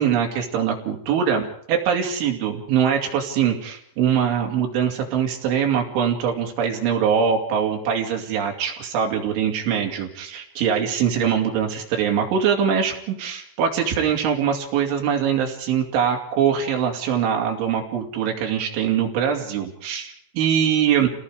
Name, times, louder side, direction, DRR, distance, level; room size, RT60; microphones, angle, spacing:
voice 1, 0.0-21.1, right 8 dB, 90° right, 2 dB, 5.1 m, -23 dB
29.5 x 18.5 x 5.0 m, 0.66 s
omnidirectional pair, 5.3 m